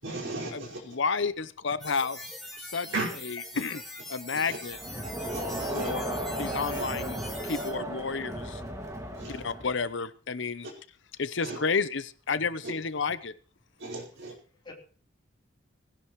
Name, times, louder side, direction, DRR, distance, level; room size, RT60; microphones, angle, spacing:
voice 1, 0.0-0.8 2.9-3.1 4.3-4.6 5.3-5.9 6.7-6.8 9.1-9.4 10.6-10.7 11.4-11.6 12.6-12.7 13.8-14.3, right 2 dB, 65° right, 5.2 m, -36 dB
voice 2, 0.9-2.2 2.7-2.9 3.6-3.8 4.1-4.8 5.7-7.2 7.4-8.6 9.3-10.7 11.2-12.0 12.3-13.3, left 5 dB, 60° left, 0.8 m, -30 dB
sound 1, 1.8-7.7, left 1 dB, ahead, 4.2 m, -43 dB
Crowd, 4.7-9.9, right 1 dB, 15° right, 2.1 m, -35 dB
voice 3, 9.0-9.4 9.7-9.8 14.6-14.7, left 3 dB, 25° left, 4.0 m, -52 dB
19.5 x 17.0 x 3.2 m
head